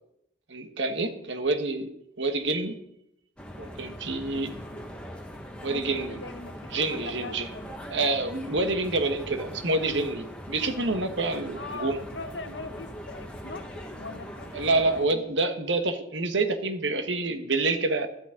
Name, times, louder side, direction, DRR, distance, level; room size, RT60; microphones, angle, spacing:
voice 1, 0.5-1.9 2.2-2.7 3.6-4.5 5.6-6.2 6.7-7.5 7.9-12.0 14.5-18.1, right 2 dB, 70° right, 7 dB, 1.4 m, -27 dB
sound 1, 3.4-15.0, equal, 5° left, 1.5 m, -41 dB
voice 2, 4.3-5.0 5.7-7.7 11.5-14.8 15.1-15.4, left 3 dB, 70° left, 10 dB, 1.0 m, -41 dB
13.5 x 12.0 x 3.8 m, 0.78 s
head